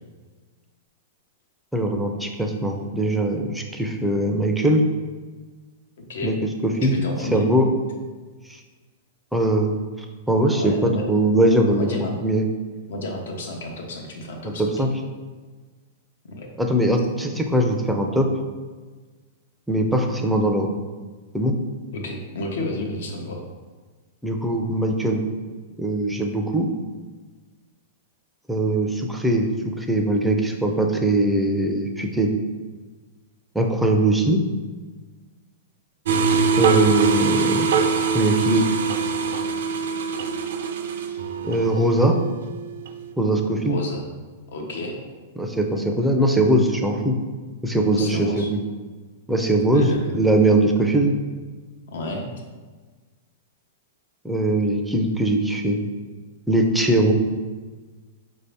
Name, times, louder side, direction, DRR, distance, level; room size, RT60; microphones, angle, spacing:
voice 1, 1.7-4.8 6.2-6.3 6.6-7.0 7.3-7.7 8.5-8.6 9.3-9.8 10.3-11.9 12.2-12.4 14.6-14.9 16.6-18.3 19.7-20.7 21.3-21.5 24.2-25.2 25.8-26.7 28.5-32.3 33.5-34.4 36.6-37.9 38.1-38.7 41.4-42.2 43.2-43.8 45.4-47.1 47.6-48.4 49.3-51.1 54.2-55.8 56.5-57.1, right 1 dB, 5° right, 2 dB, 0.4 m, -21 dB
voice 2, 6.0-6.4 6.8-7.5 10.6-11.0 11.7-12.2 12.9-14.7 16.3-16.5 21.9-23.4 43.6-44.0 44.5-45.0 47.9-48.5 49.5-50.1 51.9-52.3, left 1 dB, 75° left, 1 dB, 0.8 m, -31 dB
sound 1, 36.1-43.0, right 5 dB, 75° right, 0.4 m, -23 dB
4.9 x 2.7 x 3.3 m, 1.4 s
hypercardioid pair, 145°, 0 cm